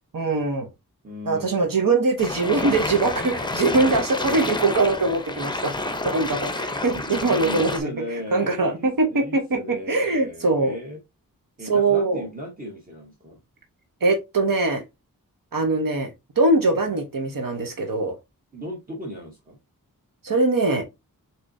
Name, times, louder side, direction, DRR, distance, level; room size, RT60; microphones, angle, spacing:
voice 1, 0.1-0.7 1.2-5.7 6.0-10.8 11.6-12.2 14.0-14.8 15.5-16.1 16.4-18.2 20.2-20.8, right 3 dB, 70° right, 1.0 m, -22 dB
voice 2, 1.0-1.7 6.0-11.0 11.6-13.4 16.9-17.0 18.5-19.6, left 1 dB, 25° right, 1.1 m, -37 dB
sound 1, 2.2-7.8, left 2 dB, 15° left, 0.6 m, -29 dB
6.5 x 3.0 x 2.6 m
wide cardioid pair, 110°, 34 cm